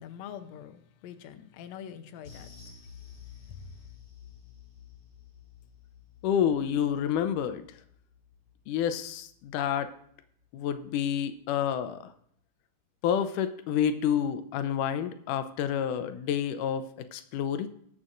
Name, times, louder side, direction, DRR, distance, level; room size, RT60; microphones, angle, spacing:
voice 1, 0.0-2.5, left 9 dB, 70° left, 8 dB, 1.8 m, -44 dB
sound 1, 2.2-10.9 11.2-11.4 11.8-11.9, left 8 dB, 50° left, 2.8 m, -52 dB
voice 2, 6.2-7.6 8.7-9.9 10.5-12.1 13.0-17.7, left 9 dB, 90° left, 11 dB, 2.2 m, -29 dB
20.0 x 7.3 x 2.5 m, 0.64 s
omnidirectional pair, 3.6 m